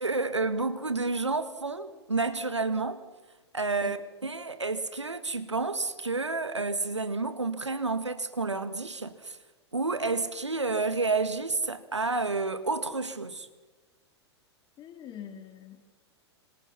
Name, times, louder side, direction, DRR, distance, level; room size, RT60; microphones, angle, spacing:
voice 1, 0.0-3.0 3.5-9.4 9.7-13.5, right 3 dB, 90° right, 2.0 m, -30 dB
voice 2, 14.8-15.9, left 9 dB, 30° left, 4.4 m, -44 dB
27.5 x 26.5 x 5.9 m
figure-of-eight pair, 100°, 15 cm